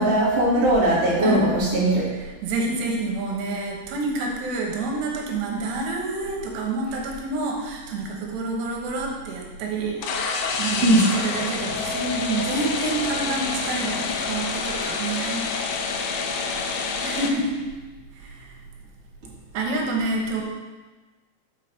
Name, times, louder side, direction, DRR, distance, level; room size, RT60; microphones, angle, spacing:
voice 1, 0.0-2.0 10.8-11.0, right 1 dB, 40° right, -7 dB, 0.9 m, -19 dB
voice 2, 2.1-15.5 17.0-17.6 18.1-18.6 19.5-20.4, right 3 dB, 85° right, 0 dB, 3.2 m, -28 dB
sound 1, 10.0-17.3, left 4 dB, 75° left, 2.3 m, -28 dB
5.9 x 5.7 x 5.1 m, 1.3 s
omnidirectional pair, 4.8 m